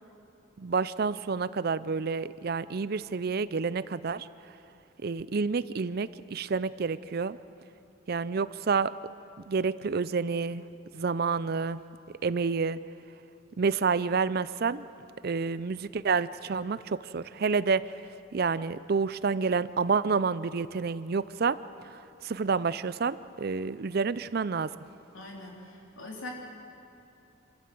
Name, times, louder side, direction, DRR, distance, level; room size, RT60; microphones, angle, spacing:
voice 1, 0.6-4.3 5.0-7.4 8.1-8.9 9.5-10.7 10.9-11.8 12.2-12.8 13.6-14.8 15.2-17.8 18.3-21.6 22.2-24.7, right 5 dB, 50° right, 16 dB, 0.5 m, -29 dB
voice 2, 25.1-26.3, left 2 dB, 90° left, -1 dB, 3.5 m, -42 dB
27.5 x 14.0 x 7.7 m, 2.8 s
head